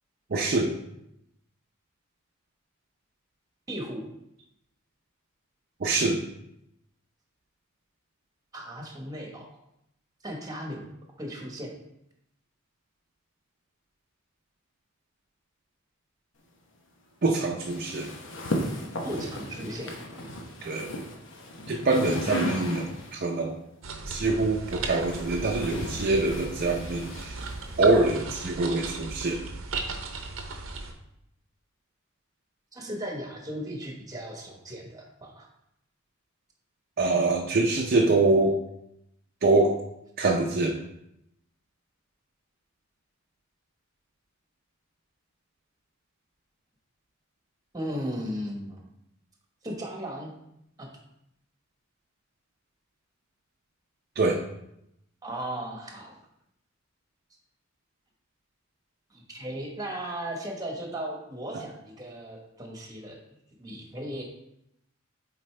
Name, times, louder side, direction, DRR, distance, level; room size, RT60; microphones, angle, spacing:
voice 1, 0.3-0.7 5.8-6.2 17.2-18.1 20.6-21.0 21.7-23.5 24.1-27.4 27.8-29.4 37.0-38.6 39.4-39.8 40.2-40.8 54.2-54.4 61.5-61.6, right 3 dB, 50° right, 0 dB, 0.6 m, -24 dB
voice 2, 3.7-4.1 8.5-9.5 10.2-10.8 11.2-11.7 19.0-20.0 32.7-35.5 47.7-48.8 49.6-50.3 50.8-50.9 55.2-56.1 59.1-63.2 63.6-64.2, equal, 20° right, 1 dB, 1.2 m, -36 dB
sound 1, 17.6-23.3 24.3-27.9, left 1 dB, 65° left, 0.9 m, -35 dB
sound 2, 23.8-30.9, right 3 dB, 80° right, 0.8 m, -37 dB
7.7 x 4.2 x 3.2 m, 0.80 s
head